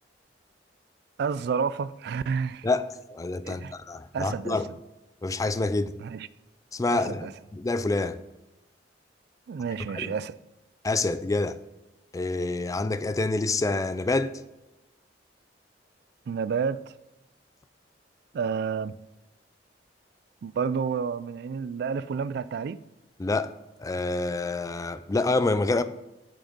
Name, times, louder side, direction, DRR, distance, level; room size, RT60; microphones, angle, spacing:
voice 1, 1.2-2.7 3.4-3.7 4.1-4.6 6.0-6.3 6.9-7.3 9.5-10.4 16.3-16.9 18.3-18.9 20.4-22.8, right 6 dB, 65° right, 0.3 m, -30 dB
voice 2, 2.6-4.7 5.2-5.9 6.7-8.2 9.9-10.1 10.8-11.6 12.1-14.3 23.2-23.5 23.8-25.8, left 3 dB, 20° left, 0.4 m, -27 dB
6.8 x 6.2 x 5.3 m
head